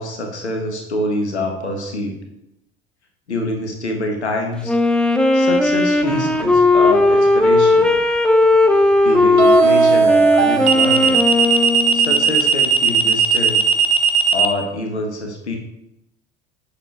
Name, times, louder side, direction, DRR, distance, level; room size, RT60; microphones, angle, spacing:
voice 1, 0.0-2.2 3.3-4.7 5.3-8.0 9.0-11.2 11.9-13.6 14.3-15.6, left 2 dB, 85° left, 2 dB, 1.4 m, -25 dB
Wind instrument woodwind instrument, 4.6-12.4, left 2 dB, 5° left, 0.6 m, -16 dB
sound 1, 6.1-6.4 9.4-14.5, right 6 dB, 75° right, 0.9 m, -15 dB
7.5 x 6.6 x 3.4 m, 0.80 s
figure-of-eight pair, 65°, 33 cm